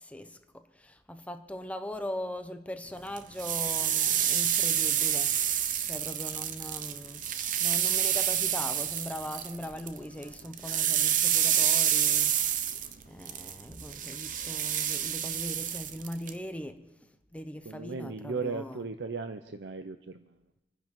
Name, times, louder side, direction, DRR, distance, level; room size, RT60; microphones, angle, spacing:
voice 1, 0.0-5.3 5.8-7.2 7.6-12.3 13.1-16.8 17.3-18.8, left 1 dB, 10° left, 0.7 m, -40 dB
sound 1, 3.2-10.0 10.2-16.3, right 9 dB, 50° right, 0.8 m, -28 dB
voice 2, 17.6-20.2, right 4 dB, 85° right, 0.6 m, -36 dB
27.5 x 10.0 x 3.7 m
head